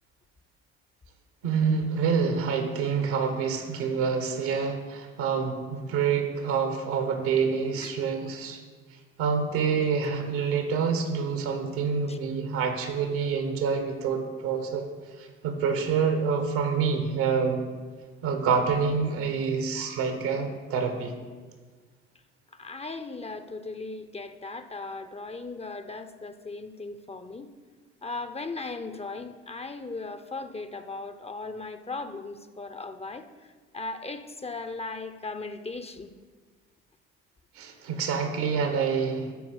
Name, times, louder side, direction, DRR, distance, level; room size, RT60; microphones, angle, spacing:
voice 1, 1.4-8.6 9.2-14.9 15.4-17.6 18.2-21.1 37.6-39.3, right 6 dB, 75° right, 6 dB, 1.7 m, -27 dB
voice 2, 22.5-27.5 28.0-33.3 33.7-36.1, left 3 dB, 20° left, 10 dB, 0.8 m, -37 dB
12.5 x 4.7 x 8.0 m, 1.5 s
hypercardioid pair, 65°, 30 cm